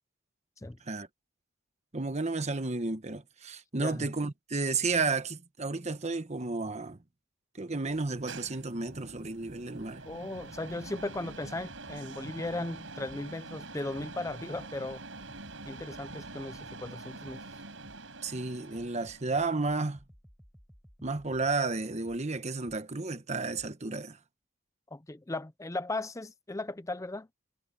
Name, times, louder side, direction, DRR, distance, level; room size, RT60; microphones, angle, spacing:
voice 1, 1.9-7.0 7.6-10.0 18.2-20.0 21.0-24.2, right 3 dB, 35° right, 1.1 m, -32 dB
sound 1, 7.9-19.5, right 3 dB, 75° right, 6.3 m, -46 dB
sound 2, 9.4-13.4 13.9-18.2 18.7-23.0 23.5-23.7, equal, ahead, 4.6 m, -58 dB
voice 2, 10.1-15.0 15.7-17.4 24.9-27.3, left 2 dB, 15° left, 0.6 m, -37 dB
head